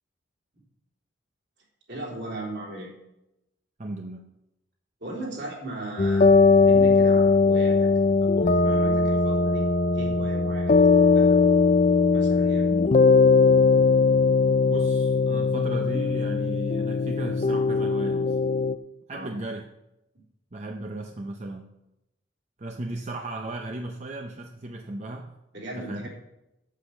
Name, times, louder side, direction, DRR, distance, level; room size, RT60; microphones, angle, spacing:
voice 1, 1.9-2.9 5.0-7.9 8.2-9.7 9.9-10.8 11.2-11.4 12.1-12.7 19.1-19.3 25.5-26.1, right 1 dB, 60° right, -3 dB, 3.7 m, -37 dB
voice 2, 3.8-4.2 14.7-18.4 19.1-19.7 20.5-21.7 22.6-25.3 25.8-26.1, right 1 dB, 35° right, 3 dB, 0.7 m, -36 dB
sound 1, 6.0-18.7, left 4 dB, 40° left, 0.4 m, -20 dB
8.3 x 8.1 x 7.2 m, 0.93 s
head